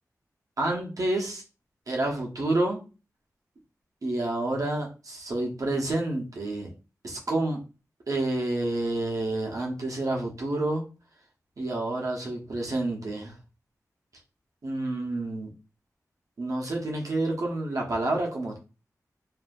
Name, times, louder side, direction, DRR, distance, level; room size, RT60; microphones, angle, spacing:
voice 1, 0.6-1.4 1.9-2.8 4.0-6.7 7.0-7.6 8.1-10.8 11.6-13.4 14.6-15.5 16.4-18.6, right 2 dB, 65° right, -1 dB, 0.8 m, -29 dB
2.7 x 2.6 x 2.3 m, 0.32 s
wide cardioid pair, 70°, 6 cm